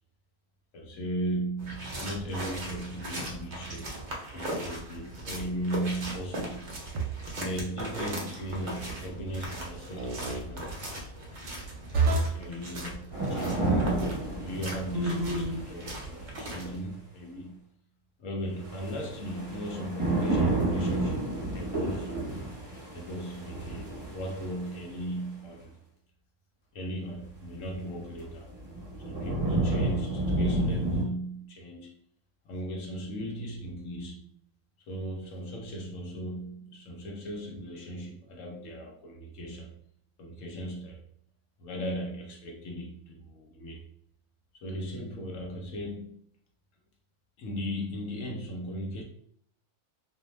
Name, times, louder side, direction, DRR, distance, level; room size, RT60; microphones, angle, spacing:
voice 1, 0.7-4.0 4.3-6.9 7.3-11.0 12.0-17.7 18.2-22.2 22.9-25.8 26.7-28.5 29.0-31.9 32.4-34.3 34.8-39.8 40.2-41.0 41.6-43.9 44.5-46.2 47.4-49.0, right 1 dB, 70° left, 0 dB, 0.8 m, -37 dB
sound 1, 1.6-16.8, right 1 dB, 55° right, 0.5 m, -39 dB
sound 2, 6.9-7.4 10.0-10.4 11.9-12.5 14.9-15.7, right 2 dB, 70° right, 0.9 m, -28 dB
sound 3, 13.1-16.2 18.6-24.9 27.5-27.6 28.2-31.0, right 2 dB, 15° right, 1.0 m, -31 dB
2.5 x 2.1 x 3.0 m, 0.67 s
omnidirectional pair, 1.6 m